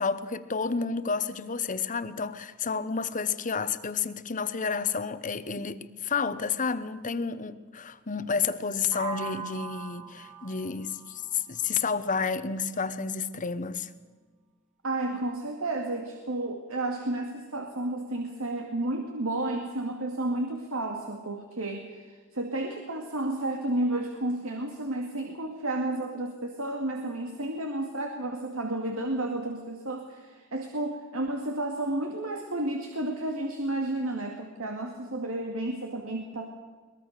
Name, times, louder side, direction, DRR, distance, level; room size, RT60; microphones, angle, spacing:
voice 1, 0.0-13.9, left 5 dB, 40° left, 1.0 m, -30 dB
sound 1, 8.9-12.8, right 5 dB, 35° right, 3.0 m, -41 dB
voice 2, 14.8-36.5, right 2 dB, 80° right, 2.2 m, -32 dB
23.0 x 20.0 x 6.7 m
head